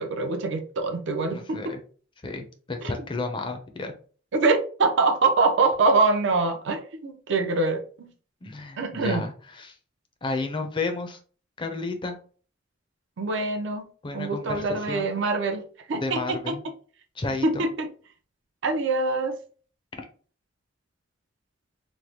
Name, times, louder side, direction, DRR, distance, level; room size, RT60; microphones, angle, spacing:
voice 1, 0.0-1.8 2.8-2.9 4.3-8.1 8.8-9.2 13.2-13.8 14.1-15.6 15.9-16.6 17.4-17.9 18.6-19.4, right 3 dB, 70° right, 5 dB, 0.5 m, -24 dB
voice 2, 1.3-1.8 2.2-3.9 8.4-9.7 10.2-11.2 11.6-12.2 14.0-15.1 15.9-16.6 17.2-17.6, left 3 dB, 25° left, 5 dB, 0.4 m, -32 dB
3.1 x 2.1 x 2.8 m, 0.41 s
head